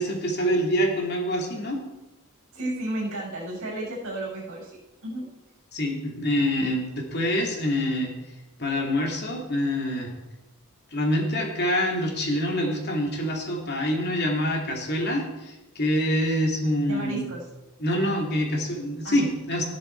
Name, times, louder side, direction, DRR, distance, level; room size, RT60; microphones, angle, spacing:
voice 1, 0.0-1.8 5.7-8.1 8.6-10.1 10.9-17.3 17.8-19.6, equal, 50° left, 0 dB, 2.7 m, -26 dB
voice 2, 2.5-5.2 16.9-17.4 19.0-19.3, right 1 dB, 65° right, -3 dB, 6.2 m, -33 dB
14.5 x 11.5 x 4.6 m, 1.0 s
head